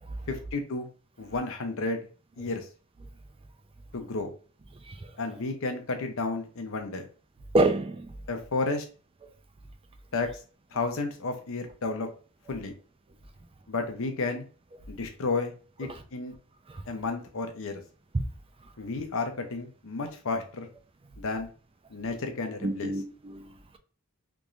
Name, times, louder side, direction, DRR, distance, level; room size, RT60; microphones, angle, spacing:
voice 1, 0.3-0.9 1.2-2.0 2.4-2.6 3.9-4.3 5.2-7.1 8.3-8.8 10.1-10.3 10.7-12.1 12.5-12.7 13.7-14.4 14.9-15.5 15.8-16.3 16.9-17.8 18.8-20.7 21.2-21.5 21.9-22.9, left 3 dB, 65° left, 0.7 m, -32 dB
voice 2, 7.5-8.1 15.9-16.0 16.7-16.8 18.1-18.2 22.6-23.8, right 2 dB, 25° right, 0.5 m, -28 dB
3.5 x 3.0 x 2.5 m
head